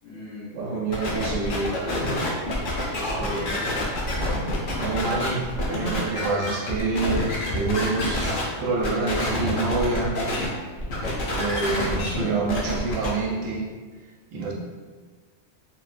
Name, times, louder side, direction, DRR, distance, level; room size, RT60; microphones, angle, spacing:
voice 1, 0.0-0.8 1.1-1.4 1.7-2.2 2.6-3.9, left 1 dB, 80° left, -9 dB, 1.2 m, -38 dB
voice 2, 0.5-1.7 3.2-3.3 4.7-7.3 7.5-10.1 11.3-13.6 14.3-14.5, right 3 dB, 75° right, -1 dB, 0.9 m, -27 dB
sound 1, 0.9-8.4 8.8-10.5 10.8-13.1, left 1 dB, 55° left, 0.6 m, -27 dB
3.0 x 2.1 x 2.4 m, 1.4 s
omnidirectional pair, 1.4 m